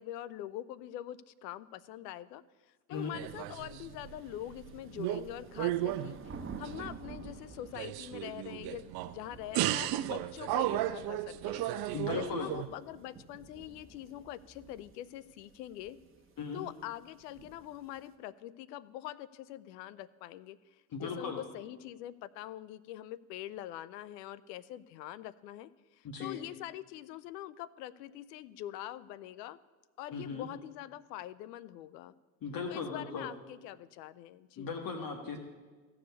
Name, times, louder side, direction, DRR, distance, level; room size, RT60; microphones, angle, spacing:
voice 1, 0.0-2.4 2.9-6.3 6.6-11.6 12.1-16.0 16.5-20.6 21.0-29.6 30.0-32.1 32.7-34.7, left 13 dB, 80° left, 19 dB, 0.6 m, -44 dB
sound 1, 2.9-18.1, right 5 dB, 25° right, 1.2 m, -52 dB
sound 2, 3.1-4.2 4.5-5.3 5.6-7.2 7.6-9.2 9.5-12.7, right 14 dB, 50° right, 0.6 m, -34 dB
voice 2, 11.9-12.5 16.4-16.6 20.9-21.4 26.0-26.4 30.1-30.5 32.4-33.3 34.6-35.4, left 5 dB, 45° left, 4 dB, 1.5 m, -37 dB
15.0 x 5.0 x 8.2 m, 1.4 s
hypercardioid pair, 85°, 48 cm